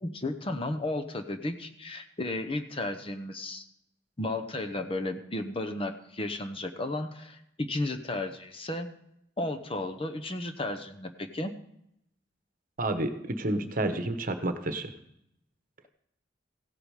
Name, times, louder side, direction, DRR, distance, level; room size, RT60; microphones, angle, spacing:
voice 1, 0.0-3.6 4.2-8.9 9.4-11.5, left 2 dB, 30° left, 6 dB, 0.9 m, -33 dB
voice 2, 12.8-14.9, right 1 dB, 45° right, 8 dB, 1.2 m, -30 dB
16.0 x 8.8 x 4.9 m, 0.77 s
head